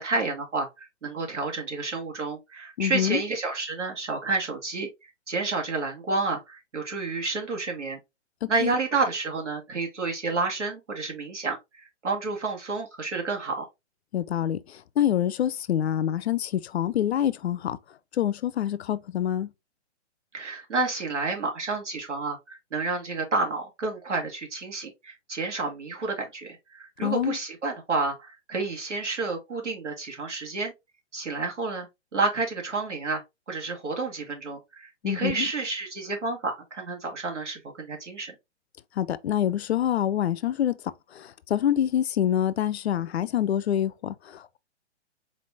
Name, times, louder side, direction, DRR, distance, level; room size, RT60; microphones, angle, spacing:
voice 1, 0.0-8.0 8.5-13.7 20.3-30.7 31.1-33.2 33.5-38.3, right 3 dB, 85° right, 1.8 m, -30 dB
voice 2, 2.8-3.2 8.4-8.7 14.1-14.6 15.0-17.8 18.2-19.5 27.0-27.4 35.0-35.5 39.0-40.8 41.2-44.6, left 10 dB, 65° left, 0.5 m, -26 dB
4.1 x 3.3 x 2.5 m
hypercardioid pair, 135°, 35 cm